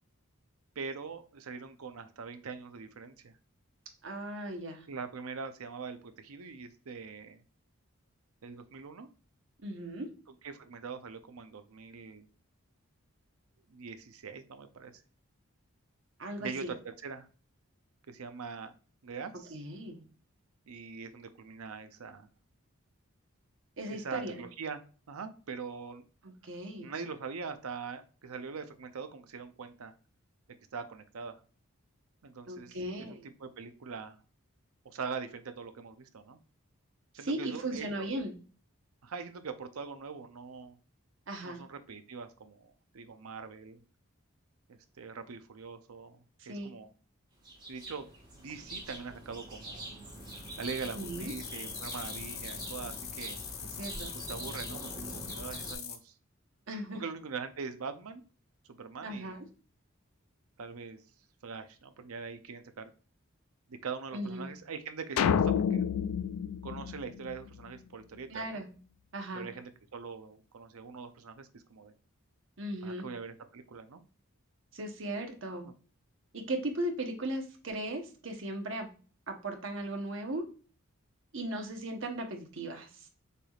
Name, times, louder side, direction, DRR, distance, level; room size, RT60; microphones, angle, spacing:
voice 1, 0.8-3.3 4.9-7.4 8.4-9.1 10.4-12.3 13.7-15.0 16.4-17.3 18.1-18.7 19.0-19.6 20.7-22.3 23.9-24.8 25.1-26.1 26.8-29.9 30.7-31.4 32.2-34.2 34.8-36.4 37.1-38.1 39.0-40.8 41.4-43.8 44.7-46.9 47.7-48.1 48.3-49.9 50.6-53.4 54.1-56.1 56.9-58.2 58.7-59.4 60.6-61.0 61.4-62.9 63.7-65.8 66.6-68.6 69.3-71.9 72.8-74.0 75.6-75.7, right 5 dB, 80° right, 9 dB, 0.6 m, -42 dB
voice 2, 4.0-4.9 9.6-10.1 16.2-16.7 19.5-20.0 23.8-24.4 26.2-26.9 32.5-33.3 37.2-38.3 41.3-41.6 46.4-46.7 50.9-51.3 53.8-54.1 56.7-57.0 59.0-59.4 64.1-64.5 68.3-68.7 69.1-69.5 72.6-73.1 74.7-75.7 76.3-78.9 79.3-80.4 81.3-83.1, right 1 dB, 60° right, 4 dB, 1.0 m, -37 dB
sound 1, 47.4-55.8, right 1 dB, 20° right, 1.2 m, -44 dB
sound 2, 50.0-56.0, left 8 dB, 45° left, 0.7 m, -43 dB
sound 3, 65.2-67.6, left 8 dB, 80° left, 0.3 m, -29 dB
6.7 x 3.4 x 2.4 m, 0.37 s
head